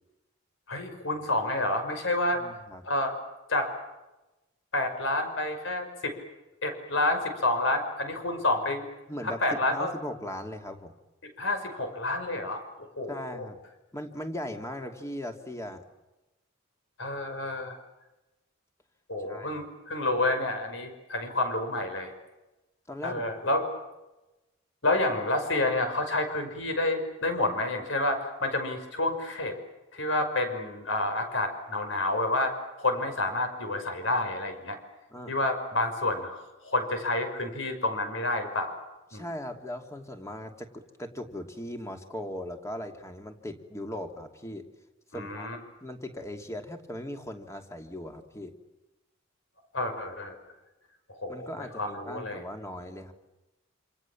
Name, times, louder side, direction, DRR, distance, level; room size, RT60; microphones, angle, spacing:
voice 1, 0.7-2.4 2.8-3.1 3.5-3.7 4.7-6.1 6.6-8.9 9.2-9.9 11.4-13.5 17.0-17.8 19.1-22.1 23.0-23.7 24.8-29.6 29.9-32.5 32.8-34.8 35.3-38.7 39.1-39.2 45.1-45.6 49.7-50.4 51.1-52.4, left 2 dB, 70° left, 6 dB, 5.8 m, -29 dB
voice 2, 2.3-2.8 9.1-10.9 13.1-13.6 13.9-15.8 19.2-19.5 22.9-23.2 35.1-35.3 39.1-44.7 45.1-45.5 45.8-48.6 51.3-53.1, left 1 dB, 15° left, 5 dB, 2.7 m, -38 dB
28.0 x 27.5 x 7.3 m, 1.0 s
head